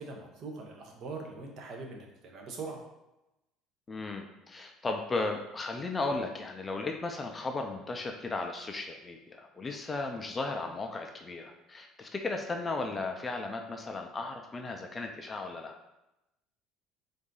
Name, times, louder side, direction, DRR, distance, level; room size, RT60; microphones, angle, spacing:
voice 1, 0.0-2.8, right 3 dB, 50° right, 1 dB, 0.9 m, -42 dB
voice 2, 3.9-15.7, left 3 dB, 20° left, 3 dB, 0.4 m, -35 dB
4.0 x 2.6 x 3.8 m, 0.93 s
cardioid pair, 120°, 0 cm